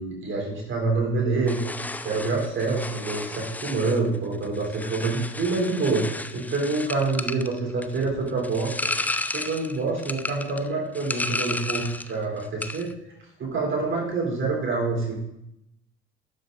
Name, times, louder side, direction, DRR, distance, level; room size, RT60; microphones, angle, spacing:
voice 1, 0.0-1.7 2.0-8.7 9.0-12.9 13.4-15.2, right 3 dB, 40° right, -2 dB, 3.5 m, -26 dB
sound 1, 1.5-12.2 12.4-12.9, left 2 dB, 5° left, 0.3 m, -33 dB
11.5 x 6.8 x 2.5 m, 0.84 s
figure-of-eight pair, 50°, 31 cm